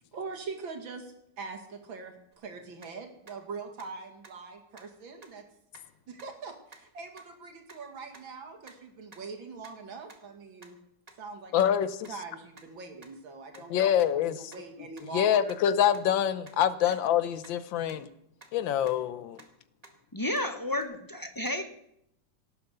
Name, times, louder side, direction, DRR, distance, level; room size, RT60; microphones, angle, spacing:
voice 1, 0.1-5.4 6.1-10.8 11.2-15.6 18.0-18.1, right 4 dB, 90° right, 5 dB, 2.9 m, -43 dB
sound 1, 2.3-2.4 2.8-2.9 3.3-3.4 3.8-3.9 4.2-4.3 4.7-4.8 5.2-5.3 5.7-5.8 6.2-6.3 6.7-6.8 7.2-7.3 7.7-7.8 8.1-8.2 8.7-8.8 9.1-9.2 9.6-9.7 10.1-10.2 10.6-10.7 11.1-11.2 11.6-11.7 12.0-12.1 12.5-12.6 13.0-13.1 13.5-13.6 14.0-14.1 14.5-14.6 15.0-15.1 15.5-15.6 15.9-16.0 16.4-16.5 16.9-17.0 17.4-17.5 17.9-18.0 18.4-18.5 18.9-19.0 19.4-19.5 19.8-19.9 20.3-20.4 20.8-20.9, right 3 dB, 20° right, 1.8 m, -51 dB
voice 2, 11.5-12.1 13.7-14.5 15.1-18.1 18.5-19.4, left 10 dB, 80° left, 14 dB, 1.5 m, -26 dB
voice 3, 20.1-21.6, left 1 dB, 30° left, 7 dB, 0.3 m, -31 dB
17.5 x 9.4 x 6.8 m, 0.78 s
omnidirectional pair, 2.1 m